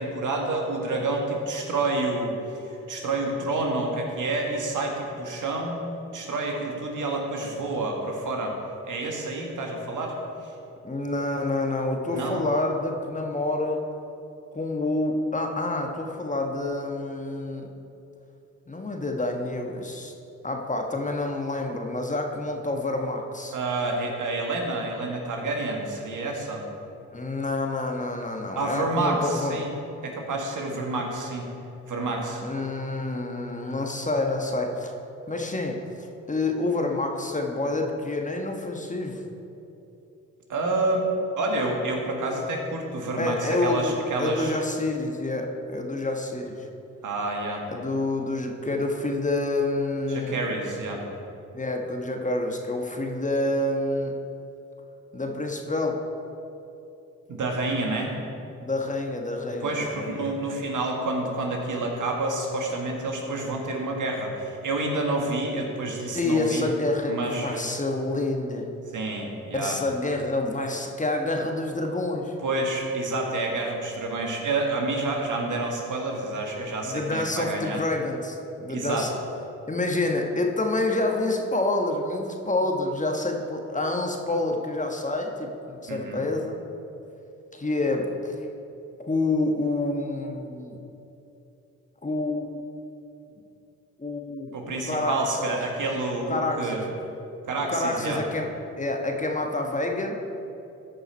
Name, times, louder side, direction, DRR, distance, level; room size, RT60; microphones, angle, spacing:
voice 1, 0.0-2.3 2.6-5.8 6.1-8.5 8.8-10.1 12.1-12.4 23.5-26.6 28.6-29.7 30.0-31.5 31.9-32.4 40.5-41.1 41.4-44.6 47.0-47.6 50.1-51.0 57.3-58.1 59.6-66.6 67.1-67.6 68.9-69.8 72.4-77.8 78.7-79.1 85.9-86.2 94.5-96.8 97.5-98.2, right 2 dB, 60° right, 1 dB, 1.9 m, -28 dB
voice 2, 10.8-13.8 14.5-17.7 18.7-20.1 20.4-23.6 27.1-29.6 32.4-34.9 35.3-39.2 43.2-46.7 47.7-50.4 51.5-54.1 55.1-56.0 58.6-60.3 66.1-68.7 69.5-72.3 76.8-79.1 79.7-86.6 87.5-88.3 89.0-90.8 92.0-92.6 94.0-94.5 94.9-95.5 96.3-96.8 97.7-98.5 98.8-100.2, left 2 dB, 20° left, 2 dB, 1.3 m, -28 dB
14.0 x 5.4 x 4.5 m, 2.9 s
hypercardioid pair, 50°, 35 cm